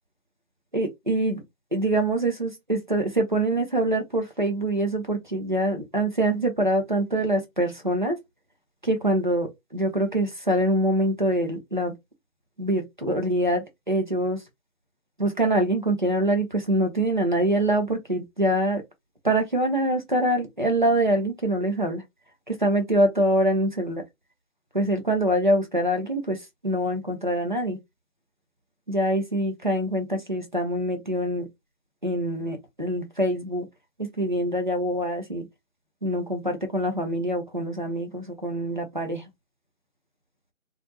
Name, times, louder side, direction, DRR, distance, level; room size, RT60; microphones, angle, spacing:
voice 1, 0.7-1.4 1.7-8.2 8.8-11.9 12.6-14.4 15.2-18.8 19.2-22.0 22.5-24.0 24.7-26.4 26.6-27.8 28.9-31.5 32.0-33.7 34.0-35.5 36.0-39.3, right 1 dB, 40° right, 0.4 m, -24 dB
2.2 x 2.1 x 2.6 m
figure-of-eight pair, 160°, 41 cm